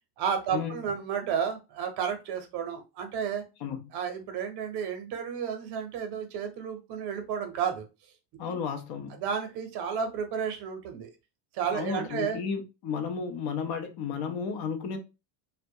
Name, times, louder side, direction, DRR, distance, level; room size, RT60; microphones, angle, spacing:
voice 1, 0.2-3.4 3.9-7.9 8.4-8.6 9.2-11.1 11.5-12.4, right 7 dB, 55° right, 0.7 m, -32 dB
voice 2, 3.6-3.9 8.4-9.2 11.7-15.0, left 6 dB, 50° left, 0.6 m, -33 dB
2.2 x 2.1 x 2.7 m
cardioid pair, 170°, 50 cm